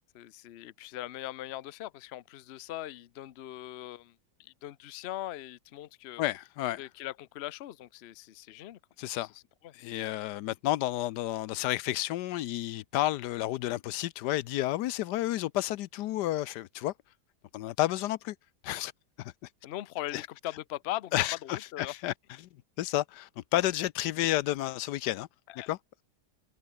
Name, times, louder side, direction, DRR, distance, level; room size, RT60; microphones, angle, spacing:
voice 1, 0.1-6.2 6.8-8.8 9.3-9.7 18.7-18.8 19.6-21.1 21.4-21.9 25.5-25.7, left 14 dB, 60° left, 0.7 m, -40 dB
voice 2, 6.2-6.8 9.0-9.3 9.7-16.9 17.5-18.4 18.6-18.9 19.2-19.3 20.1-20.2 21.1-22.1 22.4-22.5 22.8-25.3 25.7-26.0, left 15 dB, 85° left, 1.2 m, -31 dB
omnidirectional pair, 1.7 m